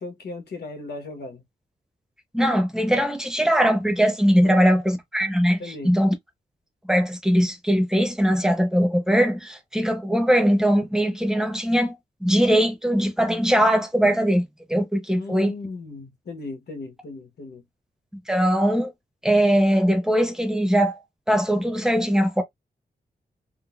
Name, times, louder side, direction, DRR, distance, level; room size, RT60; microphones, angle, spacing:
voice 1, 0.0-1.4 4.4-4.6 5.6-5.9 15.1-17.6, left 3 dB, 80° left, 1.1 m, -36 dB
voice 2, 2.3-6.1 6.9-12.0 12.2-15.5 18.3-18.9 19.2-21.0 21.3-22.4, equal, 5° right, 0.8 m, -21 dB
3.7 x 2.1 x 2.4 m
wide cardioid pair, 110°, 17 cm